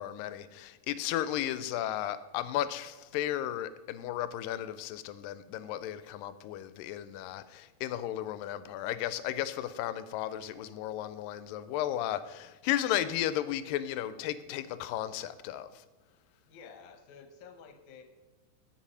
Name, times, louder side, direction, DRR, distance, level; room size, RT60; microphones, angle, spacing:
voice 1, 0.0-15.8, left 12 dB, 85° left, 2.2 m, -34 dB
voice 2, 16.4-18.0, left 6 dB, 70° left, 2.2 m, -51 dB
7.5 x 7.3 x 5.6 m
omnidirectional pair, 3.9 m